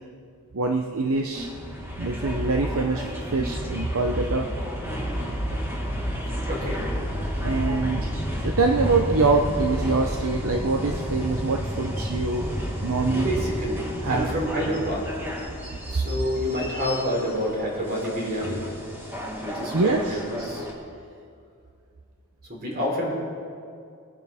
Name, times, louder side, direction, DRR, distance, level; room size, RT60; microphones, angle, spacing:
voice 1, 0.5-1.5 2.0-4.5 7.4-8.1 8.4-12.5 12.8-13.3 14.0-14.4 19.7-20.2, right 3 dB, 70° right, 3 dB, 0.8 m, -24 dB
sound 1, 1.3-20.7, equal, 10° right, 1.7 m, -31 dB
voice 2, 6.5-6.8 13.2-15.1 15.9-18.6 19.4-20.7 22.5-23.1, equal, 45° right, -3 dB, 3.8 m, -28 dB
21.5 x 10.0 x 3.6 m, 2.4 s
head